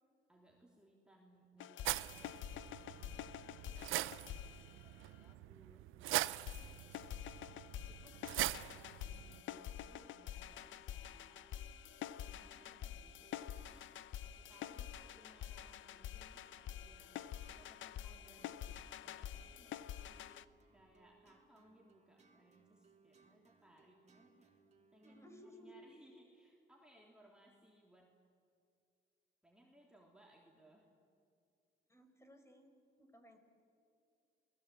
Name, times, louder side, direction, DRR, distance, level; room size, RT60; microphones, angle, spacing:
voice 1, 0.3-6.8 7.7-8.2 8.7-11.4 12.0-13.9 14.2-19.8 20.7-24.5 24.9-28.1 29.4-30.9, right 1 dB, 5° right, -1 dB, 3.2 m, -66 dB
sound 1, 1.6-5.3 6.5-20.4, left 10 dB, 75° left, 0.7 m, -48 dB
sound 2, 1.8-9.4, right 16 dB, 90° right, 0.6 m, -42 dB
sound 3, 9.9-25.4, right 4 dB, 35° right, 3.5 m, -70 dB
voice 2, 25.0-25.7 31.9-32.7 33.0-33.4, equal, 15° left, 5 dB, 4.6 m, -60 dB
28.0 x 20.0 x 8.5 m, 2.5 s
cardioid pair, 90°, 20 cm